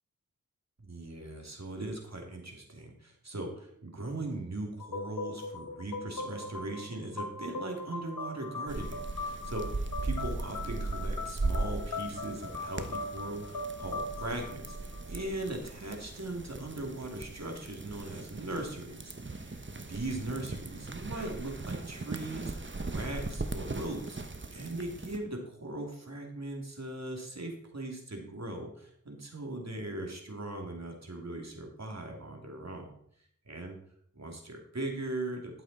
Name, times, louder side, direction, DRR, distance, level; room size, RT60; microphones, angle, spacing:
voice 1, 0.8-22.5 22.9-24.2 24.5-32.9 33.5-33.8 34.2-35.6, right 2 dB, 50° right, 2 dB, 2.9 m, -39 dB
sound 1, 4.8-15.5, left 2 dB, 80° left, 2.0 m, -40 dB
sound 2, 8.7-25.2, right 3 dB, 35° right, 1.2 m, -38 dB
12.5 x 7.6 x 4.2 m, 0.65 s
wide cardioid pair, 40°, 34 cm